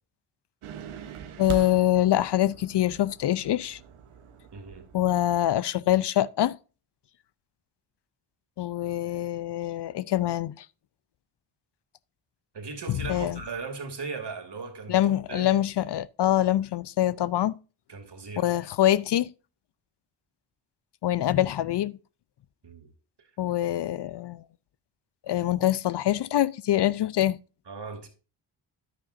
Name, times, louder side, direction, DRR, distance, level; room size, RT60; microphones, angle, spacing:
sound 1, 0.6-5.5, right 7 dB, 90° right, 1.1 m, -42 dB
voice 1, 1.4-3.8 4.9-6.6 8.6-10.7 12.9-13.4 14.9-17.6 18.4-19.3 21.0-21.9 23.4-24.4 25.3-27.4, left 13 dB, 55° left, 0.5 m, -25 dB
voice 2, 4.5-4.9 12.5-15.6 17.9-18.7 22.6-22.9 27.7-28.1, right 4 dB, 55° right, 2.7 m, -38 dB
10.0 x 9.6 x 2.6 m
cardioid pair, 50°, 49 cm